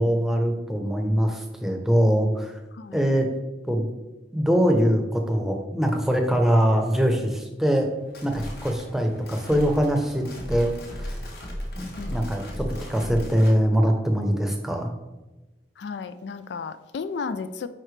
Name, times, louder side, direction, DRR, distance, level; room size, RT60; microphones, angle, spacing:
voice 1, 0.0-2.6 2.9-3.3 3.7-3.9 4.3-7.9 8.2-11.2 11.8-14.9, equal, ahead, 0.7 m, -23 dB
voice 2, 2.7-3.0 12.0-12.3 15.8-17.7, left 5 dB, 75° left, 0.4 m, -34 dB
sound 1, 7.9-13.6, equal, 60° left, 1.4 m, -36 dB
9.6 x 4.3 x 3.3 m
head